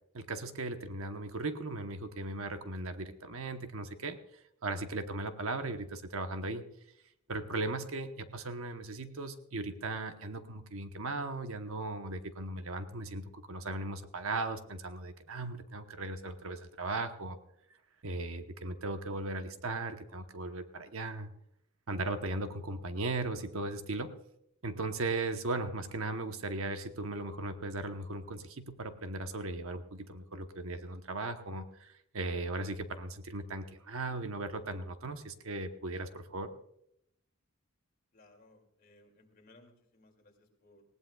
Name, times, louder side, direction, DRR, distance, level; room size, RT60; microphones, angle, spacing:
voice 1, 0.1-4.2 4.6-6.6 7.3-17.4 18.0-21.3 21.9-24.2 24.6-36.5, right 2 dB, 70° right, 8 dB, 1.0 m, -37 dB
voice 2, 38.1-40.8, left 2 dB, 40° left, 2 dB, 2.5 m, -62 dB
19.5 x 17.5 x 2.3 m, 0.76 s
head